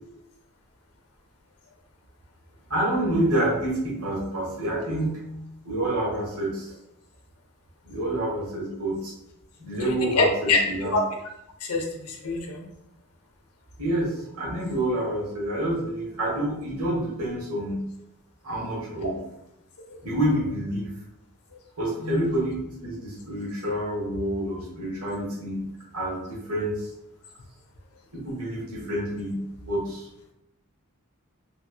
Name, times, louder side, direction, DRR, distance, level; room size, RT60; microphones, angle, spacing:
voice 1, 2.7-5.1 5.6-6.7 7.8-9.1 9.6-11.0 13.8-17.9 18.4-19.2 20.0-20.9 21.8-26.9 28.1-30.1, right 1 dB, 85° right, -4 dB, 1.3 m, -28 dB
voice 2, 9.9-10.6 10.9-11.0 11.6-12.7 22.0-22.2, left 3 dB, 85° left, 2 dB, 0.7 m, -25 dB
3.2 x 2.9 x 2.3 m, 0.83 s
head